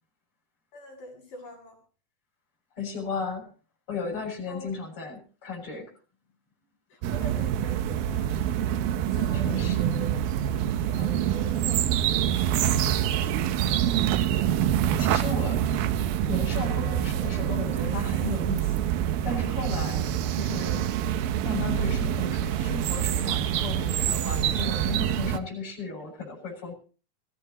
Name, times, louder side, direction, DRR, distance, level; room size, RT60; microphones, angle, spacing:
voice 1, 0.7-1.8 4.5-4.8 6.9-8.4 9.0-10.2 10.8-12.3, equal, 50° left, 2 dB, 8.9 m, -44 dB
voice 2, 2.8-3.4 3.9-5.8 9.4-9.9 15.0-15.6 16.3-18.9 19.2-20.0 20.3-20.8 21.4-26.7, left 4 dB, 30° left, -1 dB, 8.3 m, -35 dB
sound 1, 7.0-25.4, right 10 dB, 70° right, 2.6 m, -26 dB
25.0 x 16.5 x 3.1 m, 0.39 s
omnidirectional pair, 4.7 m